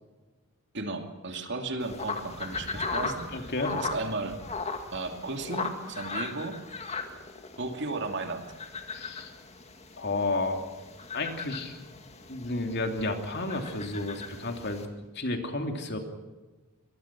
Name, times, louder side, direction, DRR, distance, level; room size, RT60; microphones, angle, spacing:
voice 1, 0.7-4.4 4.9-6.6 7.6-8.5, right 3 dB, 50° right, 5 dB, 2.6 m, -35 dB
sound 1, 1.8-14.9, left 4 dB, 30° left, 2.2 m, -38 dB
voice 2, 3.0-3.7 8.9-9.3 10.0-10.7 11.1-11.7 12.3-14.8 15.1-16.0, left 2 dB, 50° left, 5 dB, 3.0 m, -31 dB
25.0 x 21.0 x 6.1 m, 1.2 s
head